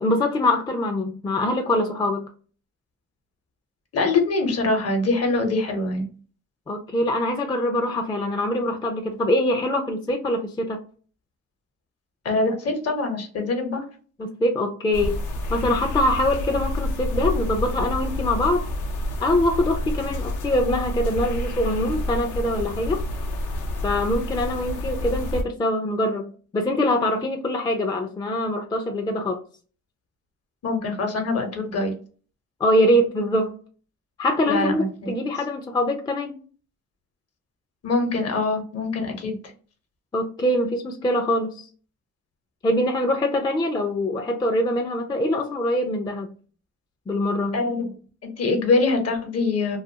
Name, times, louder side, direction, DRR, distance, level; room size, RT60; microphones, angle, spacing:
voice 1, 0.0-2.3 6.7-10.8 14.2-15.2 15.5-18.7 19.2-23.0 23.8-29.4 32.6-33.6 34.2-36.4 40.1-41.7 42.6-46.3 47.1-47.6, left 1 dB, 15° left, 3 dB, 0.3 m, -23 dB
voice 2, 3.9-6.0 12.2-13.8 30.6-32.0 34.5-35.1 37.8-39.4 47.5-47.9 48.2-49.8, left 3 dB, 55° left, 4 dB, 0.8 m, -24 dB
sound 1, 14.9-25.4, left 1 dB, 80° left, 0.6 m, -28 dB
2.4 x 2.3 x 2.7 m, 0.41 s
cardioid pair, 90°, 30 cm